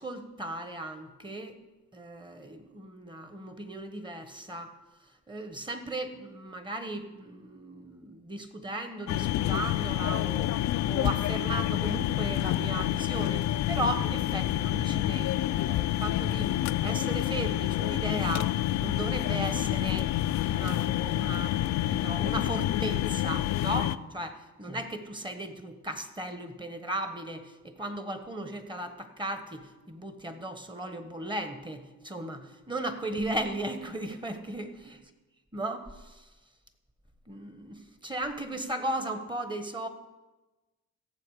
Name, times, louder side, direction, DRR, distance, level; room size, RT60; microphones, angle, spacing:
voice 1, 0.0-1.6 1.9-4.7 5.3-18.5 18.8-20.1 20.4-35.0 35.5-36.3 37.3-39.9, right 1 dB, 15° right, 8 dB, 1.3 m, -36 dB
sound 1, 9.1-24.0, left 13 dB, 65° left, 0.5 m, -28 dB
16.5 x 7.3 x 4.9 m, 1.1 s
cardioid pair, 90°, 30 cm